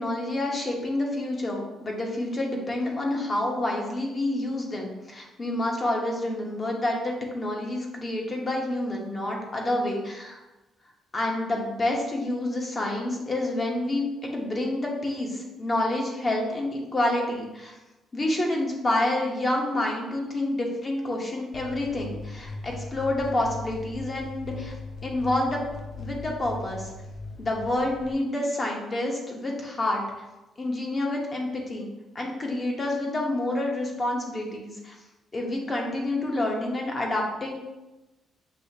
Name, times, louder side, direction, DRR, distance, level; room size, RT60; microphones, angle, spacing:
voice 1, 0.0-10.4 11.1-17.7 18.1-24.7 25.0-25.6 26.0-26.9 27.4-30.0 30.6-31.9 32.1-35.0 35.3-37.5, left 1 dB, 30° left, 0 dB, 1.0 m, -28 dB
sound 1, 21.5-28.1, left 2 dB, 65° left, 0.6 m, -39 dB
6.2 x 2.7 x 2.8 m, 1.1 s
cardioid pair, 90°, 0 cm